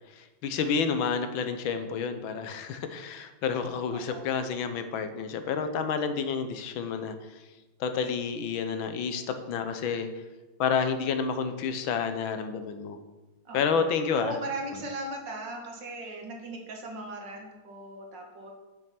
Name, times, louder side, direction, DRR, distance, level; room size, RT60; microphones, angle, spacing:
voice 1, 0.1-7.4 7.8-10.1 10.6-13.0 13.5-14.4, left 6 dB, 80° left, 9 dB, 1.6 m, -30 dB
voice 2, 3.9-4.3 13.5-13.8 14.2-18.5, right 2 dB, 65° right, 2 dB, 2.1 m, -38 dB
7.7 x 7.4 x 5.8 m, 1.2 s
omnidirectional pair, 2.2 m